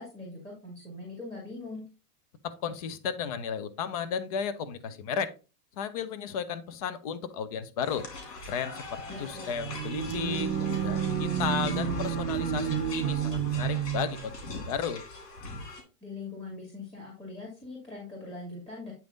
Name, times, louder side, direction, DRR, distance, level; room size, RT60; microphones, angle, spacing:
voice 1, 0.0-1.8 9.1-9.5 16.0-18.9, left 3 dB, 10° left, -4 dB, 2.3 m, -42 dB
voice 2, 2.4-5.3 5.8-8.0 8.5-15.0, left 7 dB, 25° left, 13 dB, 0.3 m, -34 dB
sound 1, 7.8-15.8, left 3 dB, 80° left, 3.0 m, -40 dB
sound 2, 9.4-14.3, right 9 dB, 55° right, 0.9 m, -30 dB
9.0 x 3.5 x 3.8 m, 0.32 s
hypercardioid pair, 145°, 47 cm